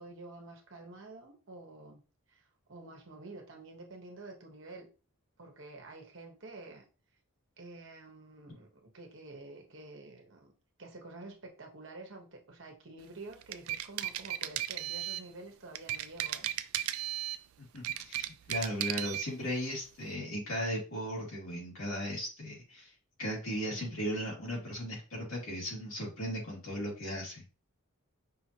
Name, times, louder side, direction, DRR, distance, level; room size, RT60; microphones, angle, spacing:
voice 1, 0.0-2.0 2.3-2.4 2.7-4.9 5.4-6.8 7.6-10.5 10.8-16.5 23.7-24.0, right 2 dB, 60° right, 2 dB, 1.2 m, -49 dB
sound 1, 13.3-15.3 15.8-17.4 17.8-19.3, right 13 dB, 75° right, 0.3 m, -35 dB
voice 2, 17.7-22.9 23.2-27.4, equal, 70° left, -4 dB, 2.6 m, -37 dB
5.6 x 2.9 x 2.9 m, 0.33 s
head